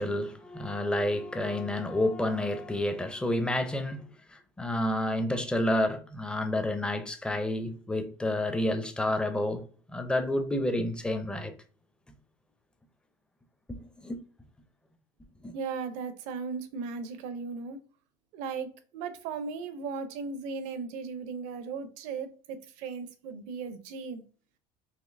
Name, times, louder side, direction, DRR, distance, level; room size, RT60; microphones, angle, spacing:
voice 1, 0.0-11.5 13.7-14.2 15.4-15.5, left 1 dB, 5° left, 0.5 m, -30 dB
voice 2, 15.5-17.8 18.3-24.2, right 5 dB, 70° right, 0.6 m, -37 dB
4.2 x 2.7 x 2.6 m
supercardioid pair, 105°, 13 cm